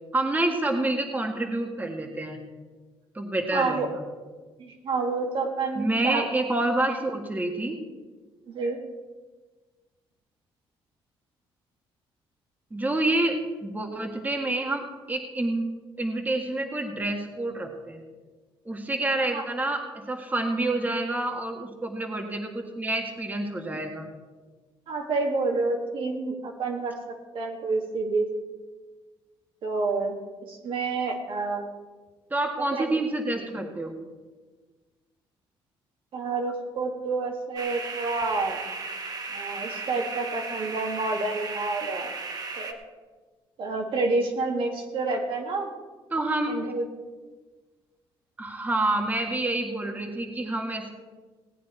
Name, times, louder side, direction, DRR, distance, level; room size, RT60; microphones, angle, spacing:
voice 1, 0.1-2.4 3.1-4.0 5.7-7.8 12.7-15.7 16.0-18.0 18.6-24.1 32.3-33.9 46.1-46.5 48.4-50.9, right 2 dB, 15° right, 2 dB, 1.6 m, -28 dB
voice 2, 3.5-3.9 4.6-6.3 8.5-8.8 19.3-19.5 24.9-27.0 27.3-28.3 29.6-30.2 30.5-31.7 32.8-33.0 36.1-38.6 39.3-42.1 42.6-42.8 43.6-45.7 46.5-46.9, right 3 dB, 60° right, 1 dB, 2.1 m, -28 dB
sound 1, 37.6-42.7, right 4 dB, 40° right, 1.4 m, -35 dB
18.0 x 9.1 x 4.5 m, 1.3 s
cardioid pair, 105°, 10 cm